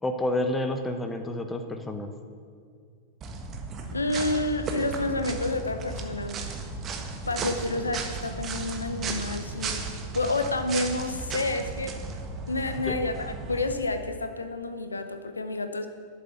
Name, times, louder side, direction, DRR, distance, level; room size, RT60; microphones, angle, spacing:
voice 1, 0.0-2.1 12.8-13.0, left 1 dB, 10° left, 7 dB, 1.0 m, -29 dB
sound 1, 3.2-13.7, right 4 dB, 30° right, 1.4 m, -35 dB
voice 2, 3.9-6.4 7.3-9.8 10.1-12.0 12.5-15.9, left 2 dB, 80° left, 8 dB, 0.7 m, -29 dB
12.0 x 7.7 x 7.2 m, 2.2 s
figure-of-eight pair, 90°, 0 cm